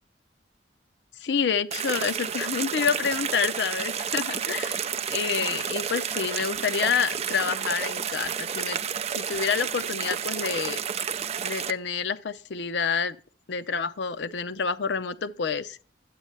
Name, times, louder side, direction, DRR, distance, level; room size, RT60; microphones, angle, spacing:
voice 1, 1.2-8.8 9.1-10.8 11.4-13.2 13.5-15.8, left 6 dB, 70° left, 0.6 m, -28 dB
sound 1, 1.7-11.7, right 8 dB, 35° right, 0.4 m, -31 dB
9.7 x 8.2 x 3.3 m
head